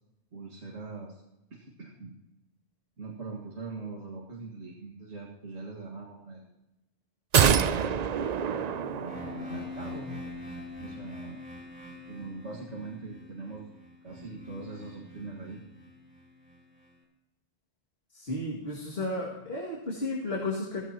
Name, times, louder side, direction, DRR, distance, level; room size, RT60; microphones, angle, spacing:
voice 1, 0.3-1.2 1.5-2.1 3.0-6.5 7.5-8.1 8.4-10.2 10.8-11.4 12.1-13.7 14.0-15.6, right 3 dB, 70° right, -4 dB, 2.2 m, -41 dB
sound 1, 7.3-9.7 10.0-10.1, right 7 dB, 50° right, 0.5 m, -26 dB
sound 2, 9.0-16.9, left 2 dB, 5° right, 3.7 m, -44 dB
voice 2, 18.1-20.8, left 2 dB, 60° left, -4 dB, 2.5 m, -33 dB
16.0 x 16.0 x 3.0 m, 0.97 s
omnidirectional pair, 1.2 m